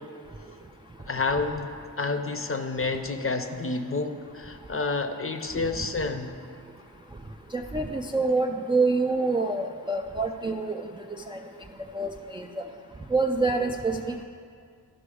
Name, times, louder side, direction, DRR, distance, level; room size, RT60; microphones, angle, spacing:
voice 1, 1.1-1.7 2.0-6.4, left 3 dB, 30° left, 7 dB, 0.7 m, -29 dB
voice 2, 7.5-10.9 11.3-11.4 11.9-12.5 13.1-14.2, right 3 dB, 15° right, 3 dB, 0.3 m, -26 dB
12.5 x 6.0 x 4.9 m, 2.2 s
wide cardioid pair, 105°, 41 cm